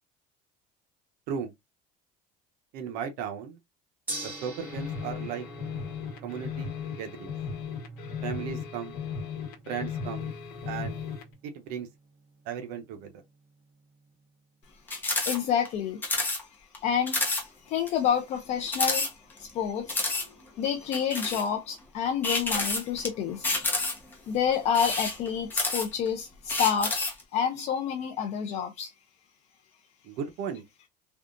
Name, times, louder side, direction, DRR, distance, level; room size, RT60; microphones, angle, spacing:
voice 1, 2.7-3.6 4.2-5.5 6.2-7.3 8.2-8.9 9.7-10.3 10.7-11.0 11.4-11.9 12.4-13.2 30.0-30.6, right 7 dB, 70° right, 0.7 m, -36 dB
Gong, 4.1-14.3, right 2 dB, 10° right, 1.4 m, -46 dB
sound 1, 4.6-11.3, left 6 dB, 80° left, 1.0 m, -36 dB
sound 2, 14.9-15.4 15.6-15.7 16.0-16.4 16.7-16.8 17.1-17.4 17.9-18.0 18.7-19.5 19.9-20.3 20.9-21.5 22.2-23.1 23.4-24.1 24.7-26.1 26.5-27.2, left 2 dB, 10° left, 0.9 m, -28 dB
voice 2, 15.3-16.0 16.8-17.3 17.7-19.1 19.4-20.0 20.6-23.5 24.3-27.1 27.3-28.9, left 8 dB, 45° left, 0.5 m, -28 dB
3.5 x 2.4 x 2.4 m
cardioid pair, 170°, 16 cm